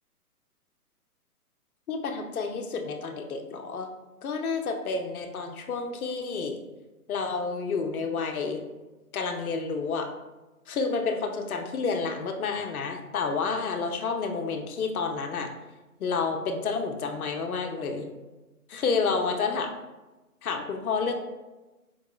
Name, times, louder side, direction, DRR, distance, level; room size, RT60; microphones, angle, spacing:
voice 1, 1.9-3.9 4.2-6.6 7.1-8.6 9.1-10.1 10.7-15.5 16.0-18.1 18.7-19.7 20.4-21.1, left 4 dB, 65° left, 4 dB, 0.7 m, -30 dB
4.5 x 2.8 x 2.3 m, 1.1 s
figure-of-eight pair, 140°, 46 cm